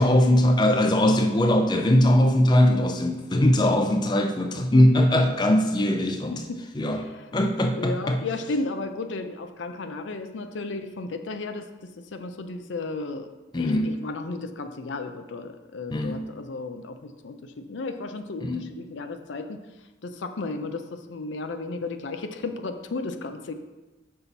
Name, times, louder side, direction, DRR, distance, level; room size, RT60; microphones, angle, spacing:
voice 1, 0.0-6.4 6.8-7.0 7.3-8.2 13.5-13.9 15.9-16.2 18.4-18.7, left 1 dB, 25° left, 5 dB, 0.4 m, -20 dB
voice 2, 7.7-13.3 13.5-19.6 20.0-23.5, left 3 dB, 80° left, 8 dB, 0.5 m, -34 dB
5.8 x 5.6 x 4.0 m, 1.1 s
head